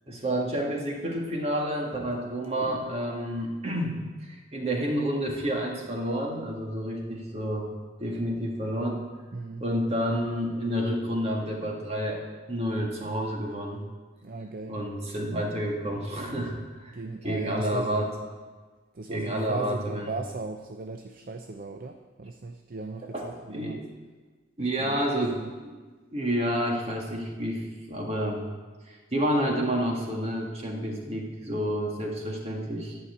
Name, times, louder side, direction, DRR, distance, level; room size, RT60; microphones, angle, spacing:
voice 1, 0.1-7.7 8.0-9.1 9.6-12.2 12.5-13.8 14.7-17.0 17.2-18.1 19.1-20.1 23.1-23.8 24.6-25.8 26.1-28.4 28.8-33.0, equal, 35° right, 0 dB, 1.7 m, -29 dB
voice 2, 9.3-9.6 14.2-14.8 16.9-18.0 18.9-23.8 24.6-25.5, right 3 dB, 50° right, 6 dB, 0.5 m, -37 dB
11.0 x 5.7 x 8.4 m, 1.4 s
head